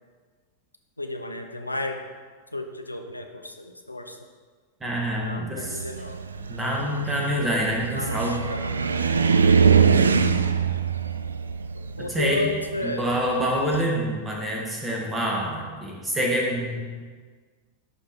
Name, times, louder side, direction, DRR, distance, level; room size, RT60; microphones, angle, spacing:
voice 1, 1.0-2.0 2.5-4.2 5.2-6.3 7.9-10.7 12.0-13.1, left 2 dB, 85° left, 5 dB, 0.5 m, -34 dB
voice 2, 4.8-5.8 6.5-8.4 12.1-12.5 12.8-17.0, equal, 10° right, -2 dB, 1.7 m, -26 dB
Car, 5.6-13.9, right 6 dB, 75° right, 0.3 m, -23 dB
11.0 x 3.7 x 4.4 m, 1.5 s
figure-of-eight pair, 90°, 0 cm